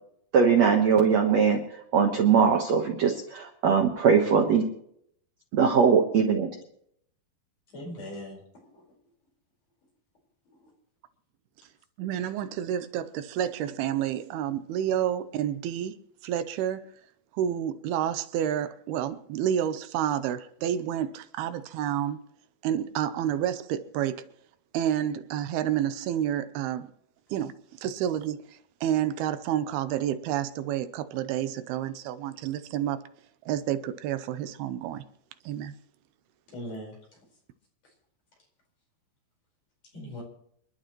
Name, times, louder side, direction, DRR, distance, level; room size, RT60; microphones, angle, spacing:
voice 1, 0.3-1.6 1.9-4.6 5.5-6.5, right 6 dB, 60° right, 1.9 m, -21 dB
voice 2, 7.7-8.8 10.5-10.7 36.5-37.0 39.9-40.2, left 1 dB, 40° left, 5.8 m, -40 dB
voice 3, 12.0-16.0 16.2-16.8 17.3-22.2 22.6-24.2 24.7-26.9 27.3-33.0 33.5-35.0 35.5-35.7, right 10 dB, 80° right, 2.6 m, -29 dB
29.0 x 11.5 x 3.1 m
omnidirectional pair, 4.5 m